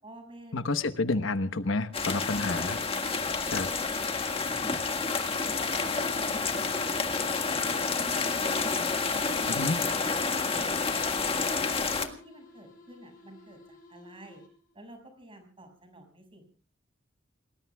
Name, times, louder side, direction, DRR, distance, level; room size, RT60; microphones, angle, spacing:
voice 1, 0.0-1.2 2.5-3.2 3.8-4.0 4.4-8.9 9.3-11.0 11.3-11.6 11.9-14.4 14.7-16.4, equal, 30° right, 5 dB, 6.1 m, -49 dB
voice 2, 0.5-2.8 3.5-3.7 9.5-9.8, left 3 dB, 80° left, 11 dB, 1.1 m, -29 dB
sound 1, 1.9-12.1, left 4 dB, 30° left, 1.7 m, -29 dB
sound 2, 8.9-14.8, left 1 dB, 45° left, 7.9 m, -54 dB
28.5 x 20.0 x 2.3 m, 0.39 s
head